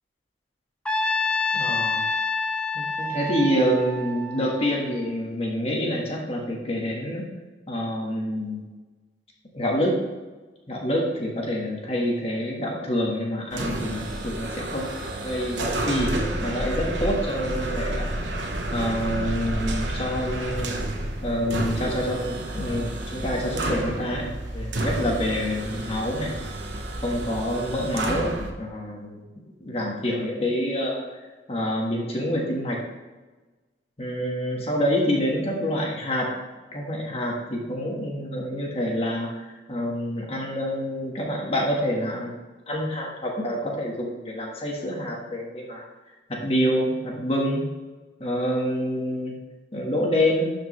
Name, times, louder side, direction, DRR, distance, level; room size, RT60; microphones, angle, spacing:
Trumpet, 0.9-5.1, left 3 dB, 5° left, 0.6 m, -27 dB
voice 1, 1.5-2.0 2.7-7.3 7.7-8.6 9.5-10.1 10.7-14.9 15.2-16.1 16.4-20.8 21.2-24.3 24.5-26.3 27.0-29.2 29.6-31.0 31.5-32.8 34.0-36.3 36.7-42.4 42.7-45.8 46.3-47.7 48.2-49.3 49.7-50.5, equal, 35° left, -1 dB, 1.5 m, -27 dB
sound 1, 13.5-28.5, right 1 dB, 75° right, 1.0 m, -30 dB
12.5 x 5.1 x 3.2 m, 1.2 s
head